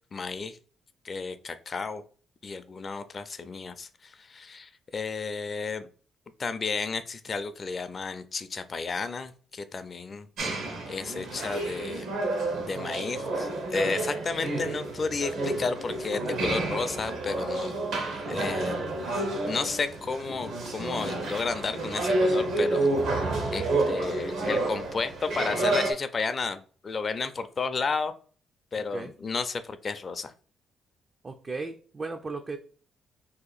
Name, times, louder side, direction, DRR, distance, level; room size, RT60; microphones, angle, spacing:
voice 1, 0.1-0.6 1.0-2.0 2.4-5.9 6.4-10.6 10.9-12.1 12.6-17.8 18.3-28.1 28.7-30.3, left 4 dB, 40° left, 11 dB, 0.4 m, -32 dB
sound 1, 10.4-25.9, right 2 dB, 75° right, 1.0 m, -29 dB
voice 2, 31.2-32.6, right 3 dB, 30° right, 5 dB, 0.3 m, -36 dB
2.8 x 2.5 x 3.9 m, 0.42 s
cardioid pair, 90°, 0 cm